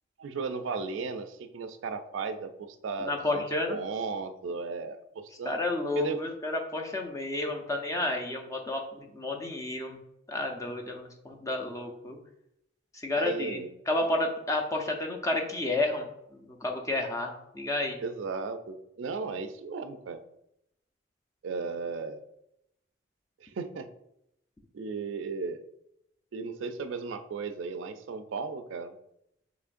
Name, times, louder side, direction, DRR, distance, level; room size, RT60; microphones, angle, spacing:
voice 1, 0.2-5.6 6.0-6.2 13.2-13.7 18.0-20.2 21.4-22.2 23.4-23.9 24.7-25.6 26.3-29.0, right 4 dB, 75° right, 10 dB, 0.4 m, -35 dB
voice 2, 3.0-3.8 5.4-10.0 10.3-12.2 13.0-16.1 16.3-18.0, left 2 dB, 15° left, 2 dB, 0.5 m, -31 dB
6.1 x 3.1 x 2.5 m, 0.80 s
head